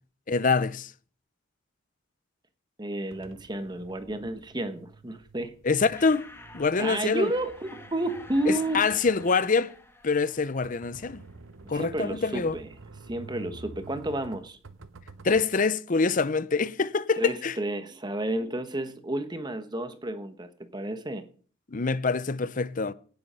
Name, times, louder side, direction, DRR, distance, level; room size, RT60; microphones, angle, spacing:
voice 1, 0.3-0.9 5.6-6.3 6.5-7.3 8.5-9.7 10.0-11.2 11.7-12.6 15.2-17.5 21.7-22.9, left 4 dB, 45° left, 0.6 m, -25 dB
voice 2, 2.8-5.5 6.8-8.9 11.7-12.7 13.1-14.6 17.2-21.2, right 1 dB, 20° right, 1.1 m, -31 dB
sound 1, 3.1-15.5, right 3 dB, 85° right, 0.9 m, -49 dB
sound 2, 5.9-11.5, left 2 dB, 10° left, 1.4 m, -49 dB
17.5 x 7.8 x 5.6 m
head